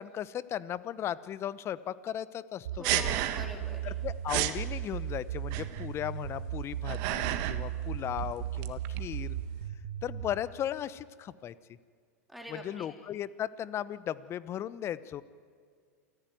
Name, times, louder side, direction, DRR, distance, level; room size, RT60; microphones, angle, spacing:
voice 1, 0.0-3.1 3.8-9.4 10.0-11.5 12.5-15.2, left 10 dB, 30° left, 17 dB, 0.9 m, -36 dB
sound 1, 2.6-10.3, right 11 dB, 70° right, 1.4 m, -36 dB
voice 2, 2.8-3.9 12.3-12.9, equal, ahead, 2 dB, 3.4 m, -44 dB
sound 2, 2.8-3.7 3.9-4.0 4.3-4.6 5.5-6.0 6.6-7.7 8.0-9.6, right 14 dB, 50° right, 1.5 m, -32 dB
28.0 x 15.0 x 9.3 m, 2.1 s
hypercardioid pair, 110°, 8 cm